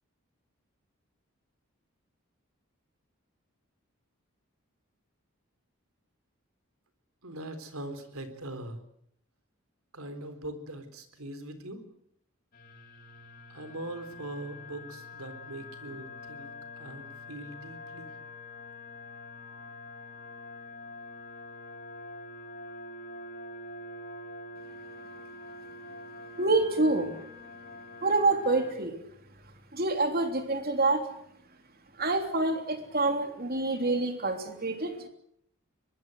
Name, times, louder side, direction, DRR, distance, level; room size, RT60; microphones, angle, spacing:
voice 1, 7.2-8.8 9.9-11.8 13.5-18.1, right 1 dB, 85° right, 9 dB, 3.8 m, -41 dB
sound 1, 12.5-28.7, left 2 dB, 45° left, 4.0 m, -45 dB
voice 2, 26.4-27.1 28.0-29.0 29.7-31.1 32.0-35.1, right 2 dB, 45° right, 6 dB, 3.3 m, -27 dB
23.5 x 20.5 x 7.9 m, 0.72 s
head